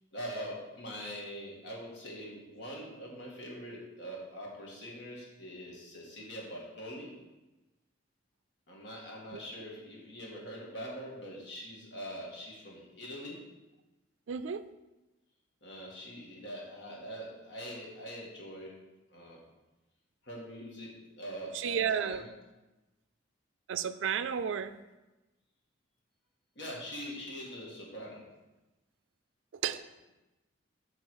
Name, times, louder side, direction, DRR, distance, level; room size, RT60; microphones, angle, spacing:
voice 1, 0.1-7.2 8.7-13.4 15.6-18.7 19.1-19.4 20.2-22.2 26.6-28.2, equal, 65° left, -3 dB, 1.9 m, -43 dB
voice 2, 9.3-9.7 14.3-14.6 21.5-22.3 23.7-24.8 29.5-29.8, right 7 dB, 80° right, 12 dB, 0.4 m, -33 dB
7.6 x 3.8 x 6.2 m, 1.1 s
head